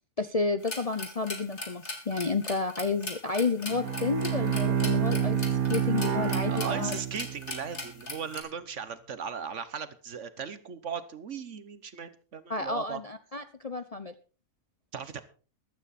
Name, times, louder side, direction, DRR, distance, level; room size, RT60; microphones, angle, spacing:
voice 1, 0.2-5.4 5.7-7.0 12.5-14.1, left 3 dB, 35° left, 10 dB, 0.7 m, -31 dB
sound 1, 0.6-8.4, left 2 dB, 50° left, 3.3 m, -40 dB
Bowed string instrument, 3.6-7.7, right 7 dB, 80° right, 1.8 m, -28 dB
voice 2, 6.5-13.0 14.9-15.2, right 6 dB, 60° right, 14 dB, 1.4 m, -38 dB
15.0 x 12.5 x 4.2 m, 0.36 s
omnidirectional pair, 1.5 m